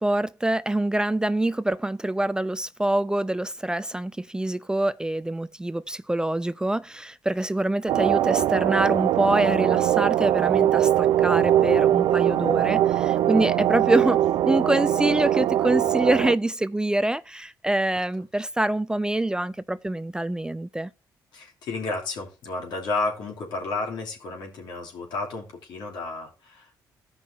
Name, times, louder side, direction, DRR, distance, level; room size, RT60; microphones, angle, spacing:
voice 1, 0.0-14.2 14.5-20.9, right 1 dB, 10° right, 0.3 m, -25 dB
sound 1, 7.9-16.4, right 12 dB, 80° right, 0.5 m, -21 dB
voice 2, 21.3-26.9, left 3 dB, 85° left, 2.8 m, -32 dB
15.5 x 5.6 x 2.8 m
cardioid pair, 85°, 8 cm